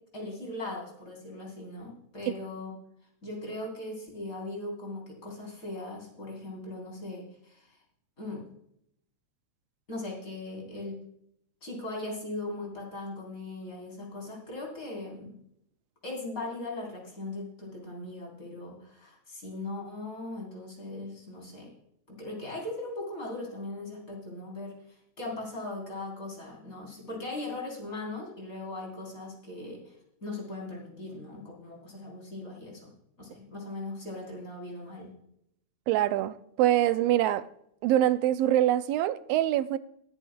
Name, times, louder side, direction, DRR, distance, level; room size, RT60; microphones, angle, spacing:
voice 1, 0.1-2.7 3.2-7.8 8.2-8.4 9.9-11.0 11.6-15.4 16.0-21.7 22.1-32.9 33.2-35.1, left 2 dB, 25° left, 4.2 m, -39 dB
voice 2, 35.9-37.5 37.8-39.8, right 12 dB, 80° right, 1.4 m, -24 dB
21.5 x 10.5 x 2.3 m
omnidirectional pair, 3.3 m